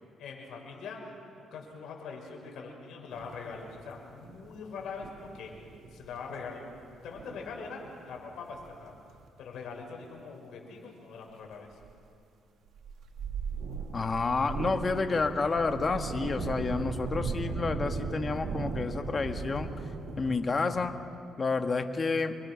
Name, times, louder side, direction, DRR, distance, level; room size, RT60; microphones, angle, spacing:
voice 1, 0.2-5.5 5.9-6.7 7.0-8.9 9.4-11.7, left 5 dB, 75° left, 0 dB, 6.1 m, -42 dB
sound 1, 3.1-6.4 6.7-9.3 11.8-11.9 12.8-20.4, right 4 dB, 70° right, 2.4 m, -38 dB
voice 2, 13.9-19.7 20.2-20.9 21.4-22.3, left 4 dB, 35° left, 6 dB, 1.6 m, -29 dB
27.5 x 23.0 x 6.4 m, 2.4 s
cardioid pair, 90°, 0 cm